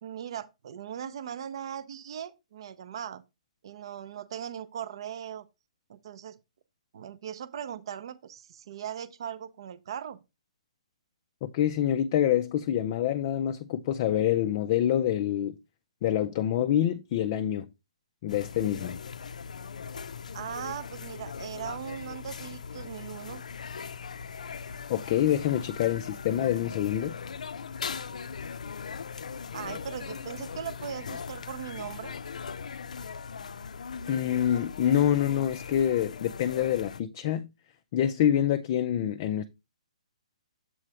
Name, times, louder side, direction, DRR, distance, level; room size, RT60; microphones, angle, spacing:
voice 1, 0.0-3.2 3.6-5.5 5.9-6.4 6.9-10.2 20.3-23.4 29.5-32.1, right 9 dB, 40° right, 0.6 m, -39 dB
voice 2, 11.4-15.6 16.0-17.7 18.2-19.0 24.5-24.6 24.9-27.1 34.1-37.5 37.9-39.4, left 10 dB, 25° left, 0.4 m, -26 dB
sound 1, 18.3-37.0, left 6 dB, 85° left, 0.5 m, -40 dB
7.6 x 3.1 x 4.8 m
hypercardioid pair, 170°, 4 cm